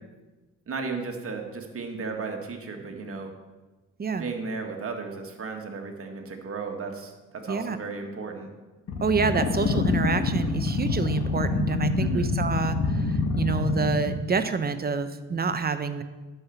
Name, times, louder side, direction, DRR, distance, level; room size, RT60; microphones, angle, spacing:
voice 1, 0.7-3.3 4.2-8.5 12.0-12.3, right 4 dB, 50° right, 3 dB, 2.0 m, -35 dB
sound 1, 8.9-14.2, left 4 dB, 55° left, 1.6 m, -26 dB
voice 2, 9.0-16.0, right 5 dB, 30° right, 10 dB, 0.9 m, -27 dB
11.5 x 5.9 x 7.0 m, 1.2 s
cardioid pair, 90°, 30 cm